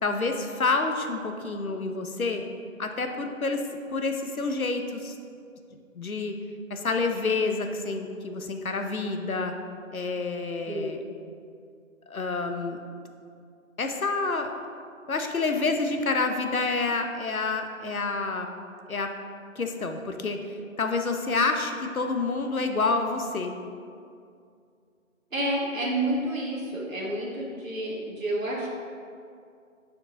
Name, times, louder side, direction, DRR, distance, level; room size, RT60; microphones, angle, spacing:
voice 1, 0.0-2.4 2.8-3.6 3.9-5.1 5.9-6.3 6.7-9.6 9.9-11.0 12.1-12.8 13.8-14.5 15.1-18.5 18.9-19.1 19.6-23.5, left 3 dB, 80° left, 5 dB, 0.9 m, -28 dB
voice 2, 25.3-28.7, right 1 dB, 70° right, -4 dB, 1.6 m, -29 dB
6.9 x 4.6 x 3.9 m, 2.4 s
figure-of-eight pair, 180°, 42 cm